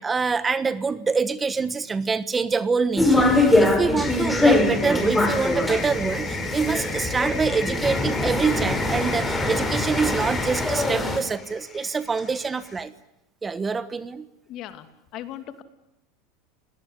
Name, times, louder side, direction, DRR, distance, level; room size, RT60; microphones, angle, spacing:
voice 1, 0.0-12.9 13.4-14.3, right 5 dB, 20° right, 14 dB, 1.3 m, -25 dB
sound 1, 3.0-11.2, left 2 dB, 10° left, 5.2 m, -23 dB
sound 2, 4.0-12.8, left 4 dB, 25° left, 4.7 m, -35 dB
voice 2, 14.5-14.9 15.1-15.6, left 12 dB, 50° left, 10 dB, 2.7 m, -37 dB
29.5 x 19.0 x 9.9 m, 0.85 s
hypercardioid pair, 100°, 0 cm